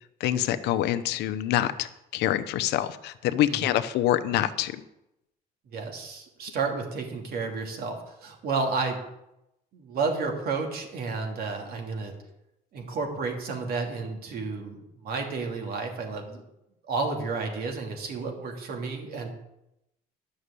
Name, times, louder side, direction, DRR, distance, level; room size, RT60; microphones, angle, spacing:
voice 1, 0.2-1.9 2.1-4.8, left 12 dB, 80° left, 10 dB, 0.8 m, -26 dB
voice 2, 5.7-9.0 9.7-12.1 12.7-16.4 16.9-19.3, right 4 dB, 65° right, 3 dB, 2.8 m, -31 dB
11.5 x 6.4 x 8.3 m, 0.87 s
cardioid pair, 110°, 17 cm